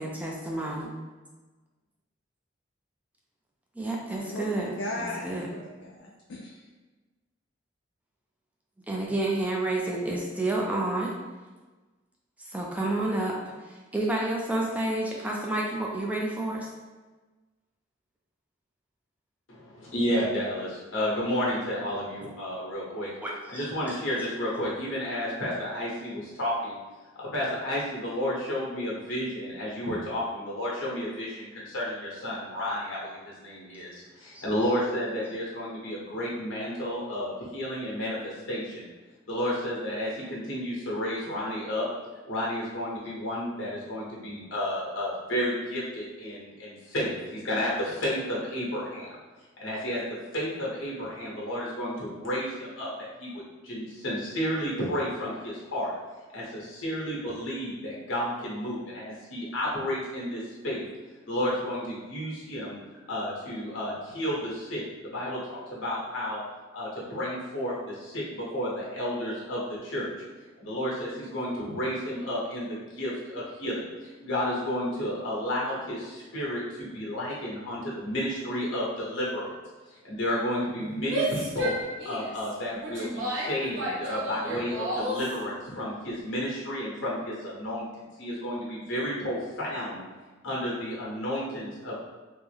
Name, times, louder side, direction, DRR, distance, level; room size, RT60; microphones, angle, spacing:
voice 1, 0.0-0.9 3.8-5.5 8.9-11.1 12.4-16.7 23.2-23.6 34.3-34.4 80.8-81.0, right 2 dB, 10° right, -2 dB, 0.3 m, -30 dB
voice 2, 4.1-6.6, left 1 dB, 65° left, -2 dB, 0.4 m, -37 dB
voice 3, 19.5-23.1 23.5-26.8 27.2-38.9 39.3-41.9 42.3-49.1 49.6-50.0 50.3-55.9 56.3-60.8 61.2-62.8 63.1-66.4 66.7-70.1 70.6-79.5 79.9-81.7 82.0-87.9 88.2-90.0 90.4-92.0, equal, 80° left, -5 dB, 1.1 m, -32 dB
Female speech woman speaking / Yell, 81.0-85.3, equal, 75° right, 0.9 m, -32 dB
3.4 x 2.1 x 3.3 m, 1.3 s
head